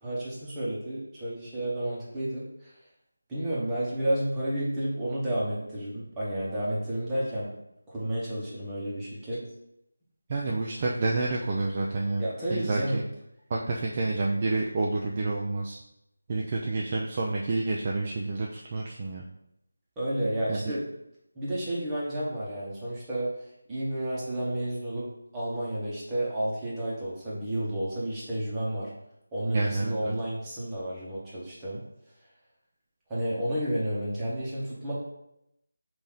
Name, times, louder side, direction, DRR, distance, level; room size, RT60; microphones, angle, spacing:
voice 1, 0.0-2.7 3.3-7.5 7.9-9.5 12.2-13.0 20.0-20.8 21.3-23.3 23.7-28.9 29.3-31.8 33.1-34.9, right 1 dB, 10° right, -8 dB, 1.1 m, -31 dB
voice 2, 10.3-12.2 12.5-13.0 13.5-15.8 16.3-19.2 20.5-20.7 29.5-30.1, right 3 dB, 30° right, -2 dB, 0.4 m, -29 dB
5.4 x 2.6 x 3.5 m, 0.81 s
figure-of-eight pair, 170°, 0 cm